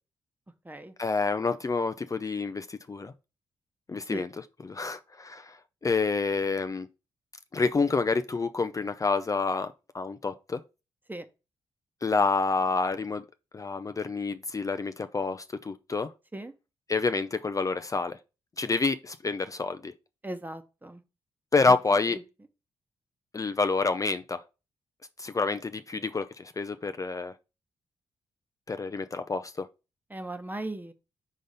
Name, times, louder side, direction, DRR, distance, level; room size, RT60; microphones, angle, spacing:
voice 1, 1.0-3.1 3.9-4.3 4.6-6.9 7.5-10.6 12.0-13.2 13.5-16.1 16.9-18.2 18.6-19.9 21.5-22.2 23.3-24.4 25.2-27.4 28.7-29.7, left 4 dB, 30° left, 0.5 m, -28 dB
voice 2, 20.2-21.0 21.7-21.8 22.1-22.2 30.1-30.9, right 1 dB, 15° right, 1.1 m, -37 dB
5.1 x 3.9 x 5.5 m
supercardioid pair, 50°, 11 cm